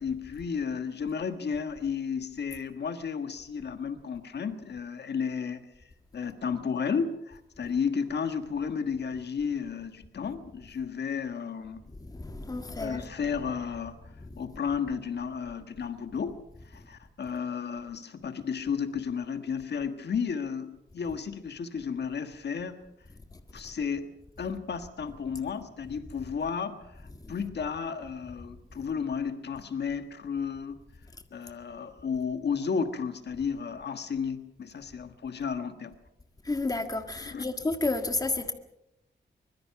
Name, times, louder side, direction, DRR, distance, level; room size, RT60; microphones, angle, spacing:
voice 1, 0.0-5.6 6.1-11.8 12.8-22.8 23.5-30.8 31.3-35.9 37.2-37.4, left 6 dB, 70° left, 1.6 m, -33 dB
voice 2, 11.9-13.1 14.2-14.5 23.3-23.4 27.2-27.4 36.4-38.5, left 2 dB, 20° left, 1.7 m, -31 dB
24.5 x 21.5 x 5.9 m
wide cardioid pair, 165°, 18 cm